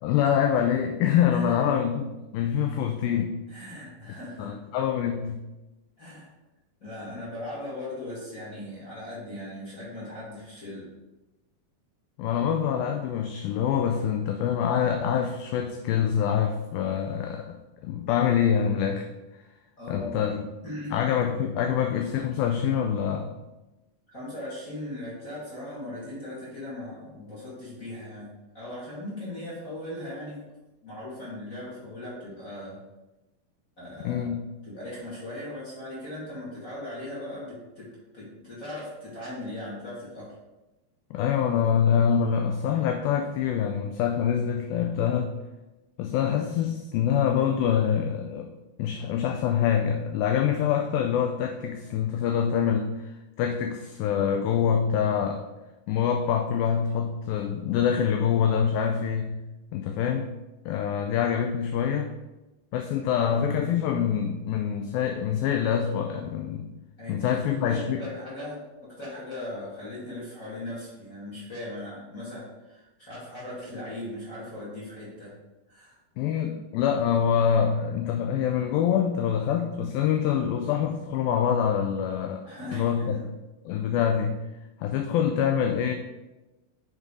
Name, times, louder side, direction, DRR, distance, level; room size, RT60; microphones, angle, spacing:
voice 1, 0.0-2.1 2.3-3.4 4.4-5.4 12.2-19.1 19.9-20.5 20.9-23.3 34.0-34.5 41.1-45.3 46.0-48.5 48.8-55.4 55.9-59.4 59.7-60.3 60.7-62.1 62.7-66.7 67.1-68.0 76.2-82.4 82.7-83.2 83.7-84.3 84.8-85.9, left 8 dB, 85° left, 5 dB, 2.1 m, -25 dB
voice 2, 1.3-1.7 3.5-4.6 6.0-6.3 6.8-10.9 19.8-20.2 20.6-21.0 24.1-28.3 28.5-30.4 30.8-32.8 33.8-34.3 34.6-37.9 38.1-40.3 67.0-68.6 68.9-75.4 75.7-76.0 76.4-76.6 82.4-83.2, left 1 dB, 35° left, -8 dB, 1.3 m, -38 dB
7.3 x 3.9 x 4.8 m, 1.1 s
omnidirectional pair, 4.6 m